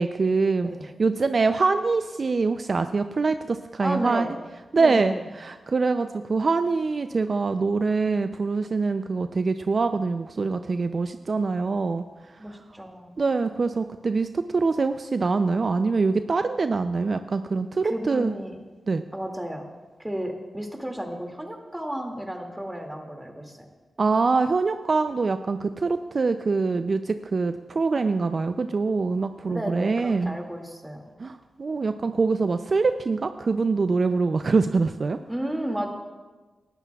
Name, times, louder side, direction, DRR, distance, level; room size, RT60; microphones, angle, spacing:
voice 1, 0.0-0.7 1.0-4.3 4.7-12.4 13.2-18.3 18.9-19.0 24.0-30.4 31.2-35.2, right 4 dB, 55° right, 9 dB, 0.4 m, -24 dB
voice 2, 3.8-4.3 4.8-5.3 12.4-13.2 17.8-18.6 19.1-19.7 20.0-23.7 29.5-31.1 35.3-35.9, equal, 10° right, 2 dB, 2.2 m, -33 dB
18.5 x 12.0 x 2.3 m, 1.2 s
cardioid pair, 55°, 0 cm